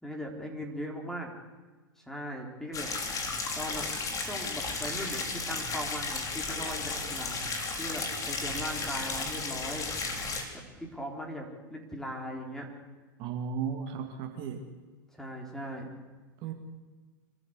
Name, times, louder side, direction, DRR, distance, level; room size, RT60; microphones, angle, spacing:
voice 1, 0.0-1.3 2.1-2.9 3.5-3.8 4.2-7.5 7.8-9.9 10.8-12.7 15.1-15.9, equal, 5° left, 1 dB, 4.5 m, -39 dB
sound 1, 2.7-10.4, left 3 dB, 30° left, 3.9 m, -34 dB
voice 2, 13.2-14.6 16.4-16.5, right 7 dB, 45° right, 3 dB, 2.7 m, -35 dB
25.0 x 13.5 x 8.3 m, 1.4 s
hypercardioid pair, 100°, 12 cm